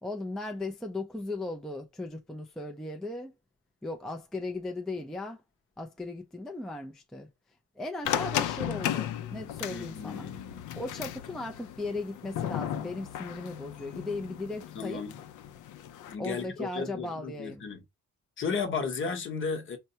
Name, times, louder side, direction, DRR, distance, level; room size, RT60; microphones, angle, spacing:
voice 1, 0.0-3.3 3.8-5.4 5.8-7.3 7.8-10.3 10.8-15.1 16.2-17.7, left 2 dB, ahead, 0.3 m, -37 dB
sound 1, 8.0-16.1, left 10 dB, 75° left, 0.5 m, -35 dB
voice 2, 9.7-10.6 14.7-15.1 16.1-17.8 18.4-19.8, left 5 dB, 40° left, 0.8 m, -34 dB
4.5 x 2.1 x 2.7 m
cardioid pair, 150°, 31 cm